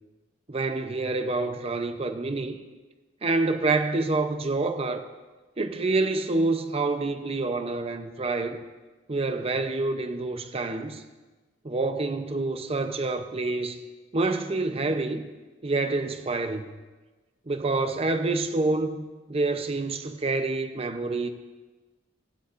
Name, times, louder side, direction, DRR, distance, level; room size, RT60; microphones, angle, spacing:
voice 1, 0.5-2.6 3.2-5.0 5.6-8.6 9.1-11.0 11.6-13.8 14.1-15.3 15.6-16.6 17.5-19.0 19.3-21.3, right 3 dB, 30° right, 0.7 m, -27 dB
16.5 x 12.5 x 2.6 m
head